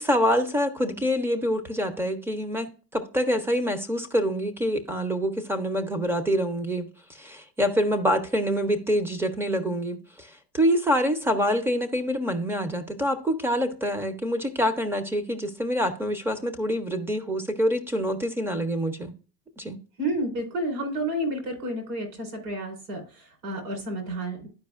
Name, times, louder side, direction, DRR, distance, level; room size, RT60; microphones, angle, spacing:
voice 1, 0.0-19.1 19.6-19.8, equal, 5° right, 0.3 m, -26 dB
voice 2, 20.0-24.5, right 1 dB, 75° right, 4.0 m, -30 dB
11.5 x 4.8 x 2.3 m
supercardioid pair, 120°, 47 cm